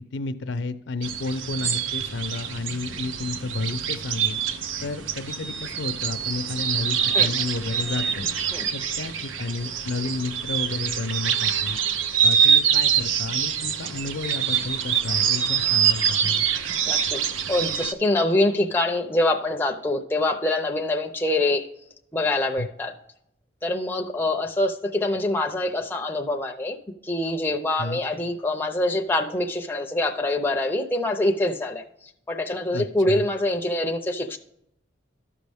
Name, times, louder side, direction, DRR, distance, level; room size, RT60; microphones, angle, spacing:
voice 1, 0.1-4.4 4.8-8.3 8.7-11.8 12.2-16.5 22.6-22.7 27.8-28.0 32.7-33.3, left 3 dB, 70° left, 10 dB, 0.5 m, -31 dB
sound 1, 1.0-17.9, right 8 dB, 90° right, 0.6 m, -25 dB
voice 2, 16.9-17.2 17.5-21.7 22.1-22.9 23.6-26.8 27.0-31.8 32.3-34.4, left 2 dB, 10° left, 4 dB, 0.5 m, -25 dB
13.0 x 5.2 x 3.5 m, 0.76 s
head